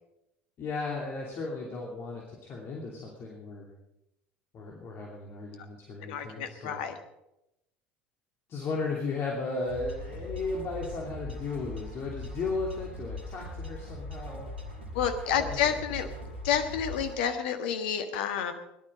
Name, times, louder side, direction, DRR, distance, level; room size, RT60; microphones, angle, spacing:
voice 1, 0.6-3.7 4.5-6.8 8.5-14.5 15.3-15.7 16.0-16.1, left 3 dB, 45° left, -2 dB, 2.9 m, -35 dB
voice 2, 6.0-7.0 14.9-16.1 16.4-18.5, left 8 dB, 65° left, 7 dB, 1.5 m, -29 dB
sound 1, 9.7-17.2, left 1 dB, 85° right, 2.3 m, -40 dB
17.5 x 12.0 x 5.1 m, 0.87 s
figure-of-eight pair, 65°, 6 cm